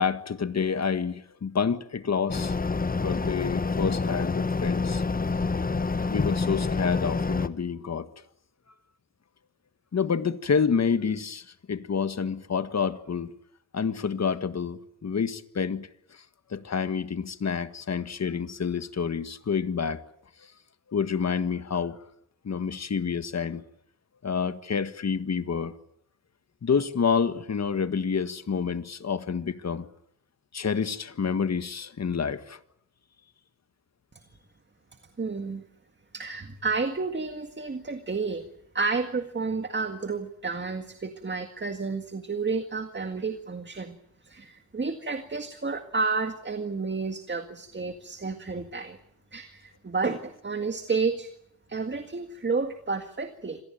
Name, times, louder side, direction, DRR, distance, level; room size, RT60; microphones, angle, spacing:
voice 1, 0.0-2.6 3.0-5.0 6.1-8.1 9.9-13.3 13.7-16.2 16.5-20.0 20.9-22.0 22.4-23.6 24.2-25.7 26.6-29.9 30.5-32.6, left 6 dB, 45° left, 1.6 m, -28 dB
sound 1, 2.3-7.5, left 4 dB, 25° left, 1.1 m, -27 dB
voice 2, 35.2-35.6 36.1-38.5 38.7-44.0 44.2-49.0 49.3-51.3 51.7-53.6, right 4 dB, 30° right, 1.9 m, -31 dB
26.5 x 19.0 x 9.1 m
wide cardioid pair, 105°, 36 cm